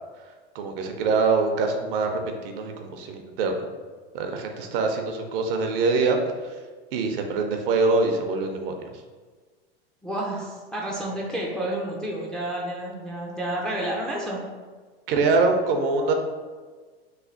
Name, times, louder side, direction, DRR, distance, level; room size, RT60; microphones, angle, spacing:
voice 1, 0.5-3.6 4.1-6.2 6.4-6.6 6.9-8.8 15.1-16.1, right 3 dB, 65° right, 4 dB, 0.6 m, -24 dB
voice 2, 10.0-14.4, right 1 dB, ahead, -3 dB, 0.3 m, -30 dB
3.2 x 2.2 x 3.8 m, 1.4 s
hypercardioid pair, 115°, 30 cm